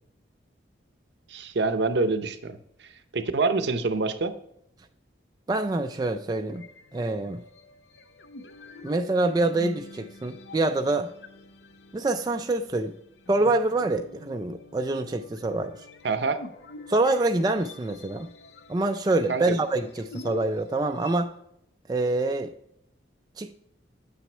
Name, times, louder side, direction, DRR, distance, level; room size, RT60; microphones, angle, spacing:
voice 1, 1.3-2.6 3.1-4.3 16.0-16.4 19.3-19.6, right 3 dB, 70° right, 10 dB, 0.6 m, -26 dB
voice 2, 5.5-6.7 6.9-7.4 8.8-11.1 11.9-12.9 13.3-15.9 16.9-18.3 18.7-21.3 21.9-22.5 23.4-23.5, right 2 dB, 20° right, 6 dB, 0.3 m, -26 dB
sound 1, 6.5-21.3, left 2 dB, 65° left, 0.6 m, -46 dB
7.8 x 6.0 x 3.2 m, 0.76 s
head